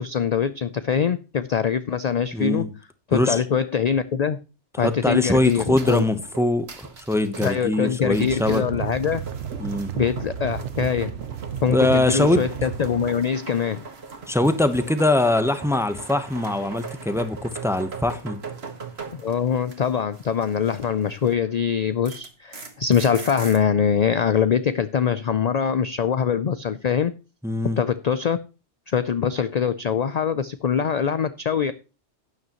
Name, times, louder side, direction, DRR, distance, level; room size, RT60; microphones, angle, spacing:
voice 1, 0.0-2.7 3.1-4.4 4.8-6.0 7.4-9.2 9.9-11.2 11.6-13.8 19.1-27.2 27.8-28.4 28.9-31.7, left 7 dB, 50° left, 0.5 m, -23 dB
voice 2, 2.3-2.7 3.1-3.4 4.8-8.6 9.6-9.9 11.7-12.4 14.3-18.4 27.4-27.8, left 1 dB, 5° right, 0.8 m, -22 dB
sound 1, 4.8-21.4 21.7-23.6, right 5 dB, 60° right, 1.8 m, -40 dB
sound 2, 8.1-13.1, right 8 dB, 80° right, 1.1 m, -32 dB
12.0 x 9.5 x 3.0 m
omnidirectional pair, 1.2 m